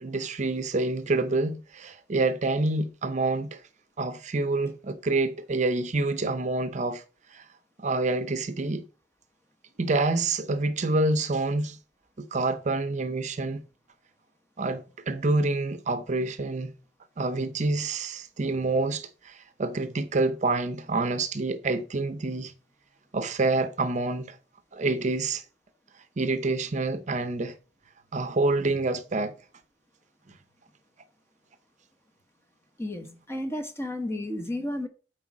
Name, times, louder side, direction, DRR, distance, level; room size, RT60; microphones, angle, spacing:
voice 1, 0.0-3.6 4.0-7.0 7.3-7.4 7.8-8.9 9.8-11.8 12.3-13.6 14.6-16.7 17.2-22.5 23.1-24.4 24.7-25.4 26.2-27.5 28.1-29.3, right 2 dB, 45° right, 0.7 m, -27 dB
voice 2, 32.8-34.9, left 1 dB, 15° left, 1.2 m, -32 dB
7.9 x 4.7 x 6.0 m
head